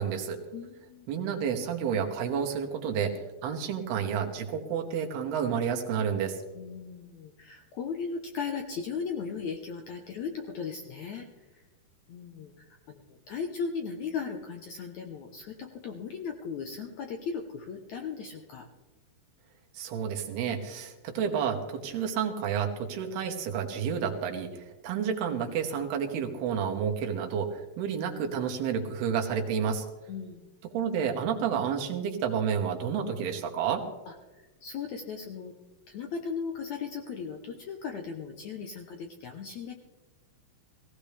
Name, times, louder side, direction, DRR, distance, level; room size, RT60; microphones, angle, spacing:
voice 1, 0.0-0.4 1.1-6.4 19.7-29.9 30.7-33.8, right 7 dB, 80° right, 3 dB, 3.4 m, -30 dB
voice 2, 0.5-1.2 6.5-11.6 12.1-18.7 30.1-30.5 34.1-35.5 35.9-39.7, left 6 dB, 75° left, 4 dB, 1.7 m, -37 dB
18.0 x 17.0 x 3.4 m, 1.2 s
omnidirectional pair, 4.5 m